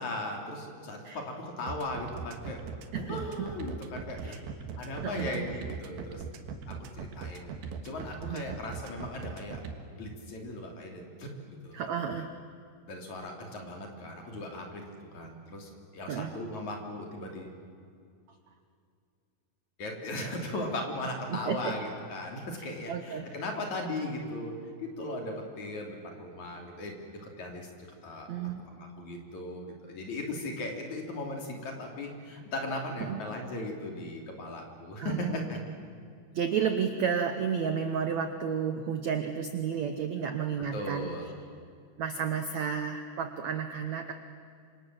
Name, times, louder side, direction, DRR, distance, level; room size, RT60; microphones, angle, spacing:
voice 1, 0.0-2.7 3.0-4.4 4.8-6.2 6.7-7.5 7.8-9.6 10.0-11.3 11.6-11.8 12.9-14.8 15.1-17.6 19.8-24.5 24.8-27.7 28.0-28.3 28.6-35.6 40.7-41.4, left 1 dB, 45° left, 2 dB, 4.2 m, -37 dB
sound 1, 1.7-9.7, right 6 dB, 65° right, 3.3 m, -40 dB
voice 2, 2.9-3.5 4.2-4.4 5.0-5.5 8.3-8.6 11.7-12.3 16.1-16.3 21.3-21.7 22.6-23.3 28.3-28.6 33.0-33.2 35.0-35.4 36.3-41.1 42.0-44.1, right 7 dB, 85° right, 7 dB, 1.5 m, -32 dB
28.5 x 26.0 x 7.6 m, 2.3 s
omnidirectional pair, 4.9 m